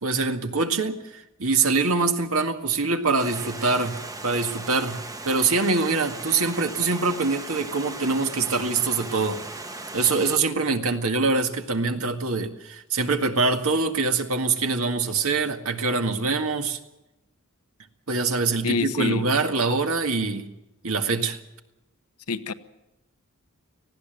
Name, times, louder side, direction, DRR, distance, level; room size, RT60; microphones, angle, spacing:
voice 1, 0.0-3.9 4.2-5.0 5.2-9.4 9.9-16.8 18.1-20.5 20.8-21.4, right 4 dB, 70° right, 6 dB, 1.8 m, -24 dB
Stream, 3.2-10.4, right 2 dB, 15° right, 1.0 m, -37 dB
voice 2, 18.6-19.2 22.3-22.5, left 4 dB, 85° left, 11 dB, 1.1 m, -26 dB
19.0 x 15.5 x 9.1 m, 0.96 s
head